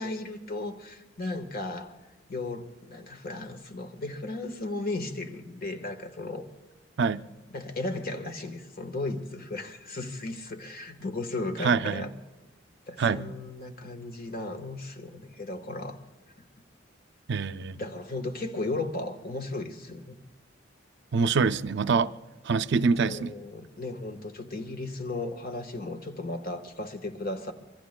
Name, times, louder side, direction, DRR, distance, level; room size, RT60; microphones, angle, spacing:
voice 1, 0.0-1.9 2.3-6.5 7.5-12.1 12.9-16.0 17.7-20.2 21.3-21.4 22.7-27.5, left 2 dB, 50° left, 1.3 m, -35 dB
voice 2, 11.6-12.1 13.0-13.3 17.3-17.8 21.1-22.1 22.4-23.3, right 5 dB, 60° right, 0.5 m, -25 dB
26.5 x 23.5 x 2.2 m
head